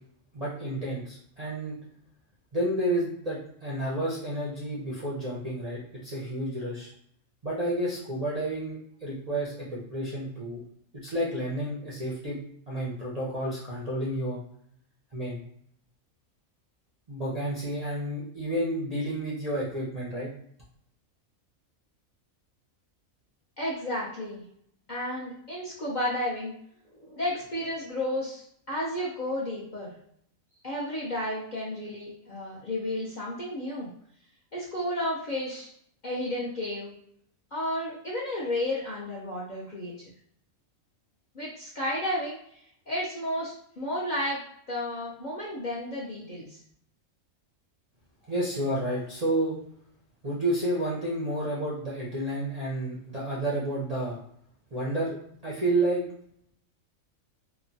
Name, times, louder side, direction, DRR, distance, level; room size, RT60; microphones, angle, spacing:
voice 1, 0.3-1.7 2.5-6.9 7.4-10.6 10.9-12.4 12.7-14.4 15.1-15.4 17.1-20.3 48.3-49.6 50.2-54.2 54.7-55.2 55.4-56.0, right 1 dB, 45° right, -7 dB, 0.5 m, -30 dB
voice 2, 23.6-24.4 24.9-26.5 26.9-29.9 30.6-33.9 34.5-35.7 36.0-36.9 37.5-40.0 41.3-42.6 42.9-44.4 44.7-46.6, left 1 dB, 50° left, -7 dB, 0.5 m, -32 dB
3.0 x 2.2 x 2.6 m, 0.67 s
omnidirectional pair, 1.4 m